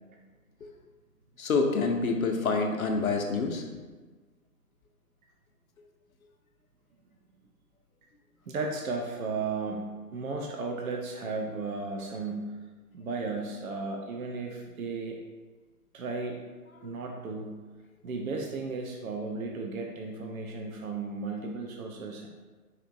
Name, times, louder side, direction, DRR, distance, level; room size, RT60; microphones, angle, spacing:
voice 1, 1.4-3.6, left 4 dB, 60° left, 3 dB, 0.5 m, -27 dB
voice 2, 8.5-12.5 12.9-15.2 15.9-16.4 16.8-17.6 18.0-22.3, right 3 dB, 60° right, 1 dB, 0.5 m, -35 dB
4.2 x 2.5 x 2.6 m, 1.3 s
figure-of-eight pair, 140°, 47 cm